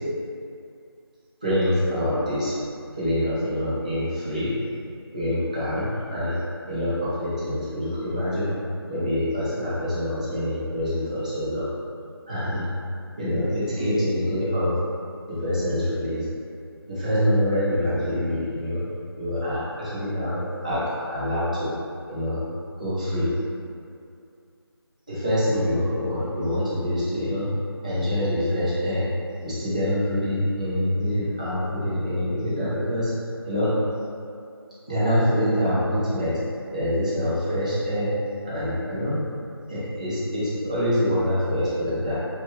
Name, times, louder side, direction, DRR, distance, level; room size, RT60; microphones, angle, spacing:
voice 1, 1.4-2.5 3.0-4.5 5.1-6.4 6.7-8.5 8.9-11.7 12.3-12.7 13.2-14.7 15.3-16.3 16.9-18.8 19.1-21.7 22.1-22.4 22.8-23.3 25.1-27.5 27.8-29.0 29.4-33.1 33.4-33.7 34.9-36.4 36.7-38.1 38.4-39.2 39.7-42.1, equal, 15° right, -12 dB, 0.5 m, -25 dB
3.0 x 2.2 x 3.0 m, 2.5 s
figure-of-eight pair, 170°, 13 cm